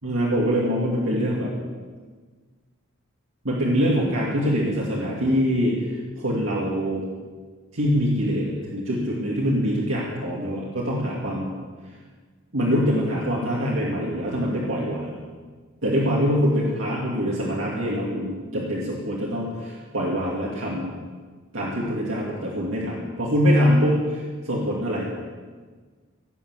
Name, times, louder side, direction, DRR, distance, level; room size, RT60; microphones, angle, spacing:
voice 1, 0.0-1.5 3.4-7.1 7.7-11.5 12.5-15.2 15.8-20.9 21.5-25.1, equal, 75° right, -5 dB, 2.6 m, -24 dB
18.5 x 7.2 x 8.3 m, 1.5 s
head